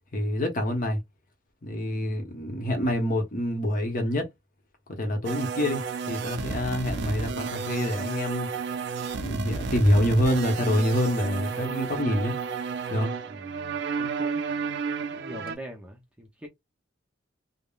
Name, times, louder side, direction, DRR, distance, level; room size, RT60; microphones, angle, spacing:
voice 1, 0.1-1.0 1.6-4.3 5.0-5.8 6.1-8.5 9.1-12.3 12.9-13.1, equal, 45° left, 0.8 m, -26 dB
voice 2, 1.8-2.2 13.3-14.4 15.1-16.5, right 1 dB, 5° right, 0.5 m, -43 dB
sound 1, 5.2-15.5, right 5 dB, 60° right, 0.4 m, -32 dB
3.4 x 2.0 x 2.3 m
head